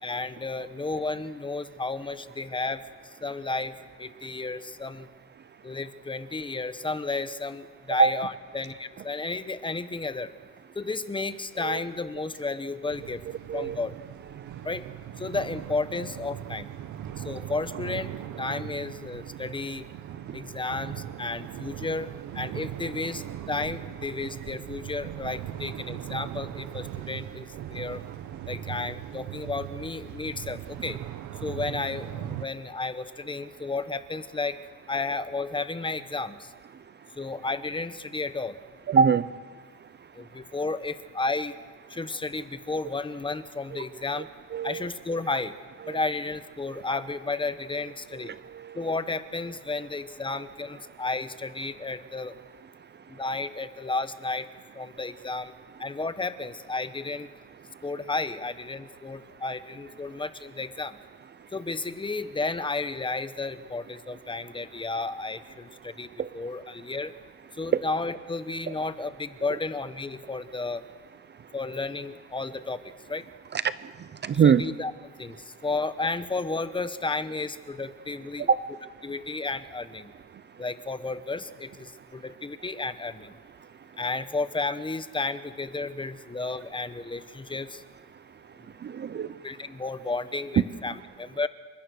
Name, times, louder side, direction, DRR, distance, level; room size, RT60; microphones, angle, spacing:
voice 1, 0.0-2.8 3.2-3.7 4.0-5.1 5.6-10.3 10.7-13.2 13.5-13.9 14.6-14.8 15.2-16.7 17.2-19.9 20.3-28.0 28.5-31.0 31.4-34.6 34.9-36.5 37.2-38.6 40.1-41.6 41.9-44.3 44.6-45.5 45.9-48.3 48.7-52.3 53.1-54.5 54.7-55.5 55.8-57.3 57.8-61.0 61.5-66.1 66.3-67.1 67.5-70.8 71.5-72.8 73.1-73.2 74.4-74.9 75.2-78.5 79.0-80.1 80.6-83.4 84.0-87.8 89.2-91.5, left 3 dB, 15° left, 1.1 m, -32 dB
sound 1, 12.9-32.5, right 11 dB, 65° right, 1.1 m, -39 dB
voice 2, 38.9-39.2 43.7-43.8 44.1-44.2 44.5-44.9 45.9-46.0 46.7-46.8 48.2-48.8 66.2-66.3 68.7-68.8 73.5-73.6 74.2-74.7 78.4-78.6 88.8-89.3, right 6 dB, 35° right, 0.6 m, -23 dB
28.0 x 24.5 x 6.6 m
cardioid pair, 135°, 32 cm